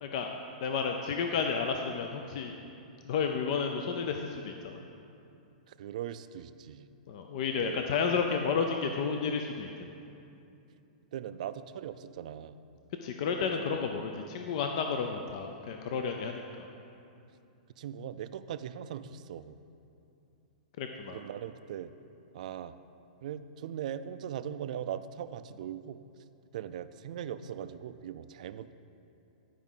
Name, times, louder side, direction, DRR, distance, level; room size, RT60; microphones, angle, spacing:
voice 1, 0.0-2.5 3.0-4.8 7.1-9.9 13.0-16.7 20.8-21.2, left 5 dB, 50° left, 4 dB, 0.5 m, -32 dB
voice 2, 5.7-6.9 7.5-7.8 11.1-12.6 13.4-13.8 17.8-19.6 21.1-21.9 22.3-22.8 23.2-26.0 26.5-28.7, right 9 dB, 60° right, 12 dB, 0.4 m, -40 dB
11.5 x 4.9 x 5.6 m, 2.7 s
hypercardioid pair, 145°, 4 cm